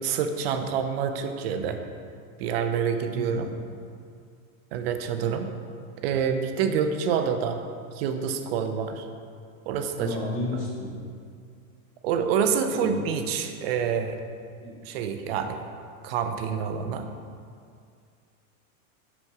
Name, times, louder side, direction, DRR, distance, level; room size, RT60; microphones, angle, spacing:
voice 1, 0.0-1.8 2.4-3.5 4.7-5.5 6.0-7.6 7.9-9.1 9.7-10.2 12.0-14.2 14.8-15.6 16.0-17.1, right 7 dB, 45° right, 7 dB, 0.6 m, -27 dB
voice 2, 3.1-3.4 10.0-11.0 12.8-13.0 14.6-14.8, left 2 dB, 30° left, -5 dB, 1.7 m, -32 dB
5.8 x 5.2 x 4.5 m, 2.3 s
supercardioid pair, 150°, 43 cm